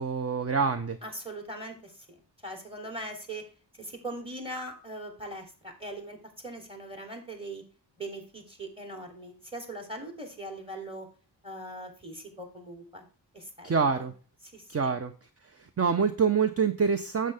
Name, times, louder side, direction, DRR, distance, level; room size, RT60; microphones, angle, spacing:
voice 1, 0.0-1.0 13.6-14.1 14.7-15.1 15.4-17.3, right 5 dB, 35° right, 9 dB, 0.9 m, -26 dB
voice 2, 1.0-3.4 3.7-7.6 8.0-11.1 11.4-13.0 13.3-14.1 14.4-14.9, right 1 dB, 15° right, 4 dB, 3.1 m, -41 dB
9.4 x 7.8 x 3.5 m, 0.37 s
wide cardioid pair, 80°, 42 cm